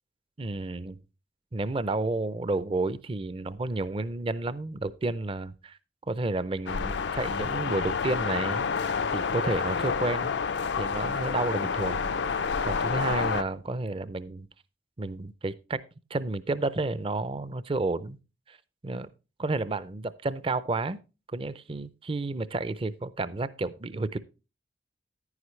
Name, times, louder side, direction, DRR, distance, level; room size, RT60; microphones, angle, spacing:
voice 1, 0.4-1.0 1.5-5.8 6.1-8.7 9.1-10.4 10.8-14.5 15.0-15.8 16.1-18.2 18.5-18.6 18.8-19.1 19.4-21.0 21.3-24.2, right 2 dB, 30° right, 0.5 m, -31 dB
sound 1, 6.7-13.4, left 5 dB, 75° left, 0.5 m, -29 dB
10.0 x 9.7 x 3.2 m
head